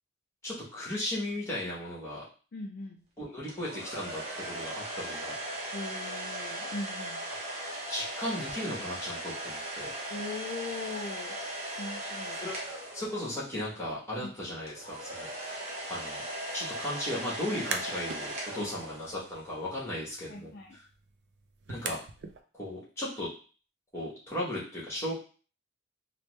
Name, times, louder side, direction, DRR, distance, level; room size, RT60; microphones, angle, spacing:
voice 1, 0.4-2.2 3.2-5.7 7.5-7.6 7.9-9.9 12.4-12.5 12.9-15.6 15.9-16.2 16.5-20.8 21.7-22.0 22.5-23.3 23.9-25.1, left 1 dB, 15° left, -6 dB, 1.1 m, -36 dB
voice 2, 2.5-3.0 5.7-7.2 10.1-11.4 11.8-12.4 14.2-14.3 18.5-18.7 20.3-20.8 21.7-21.9, left 3 dB, 45° left, 0 dB, 0.3 m, -40 dB
sound 1, 3.5-13.6 14.7-19.4, right 1 dB, 30° right, 0.8 m, -38 dB
sound 2, 17.4-18.2 18.6-22.4, right 5 dB, 55° right, 0.3 m, -42 dB
3.2 x 2.1 x 3.1 m, 0.38 s
head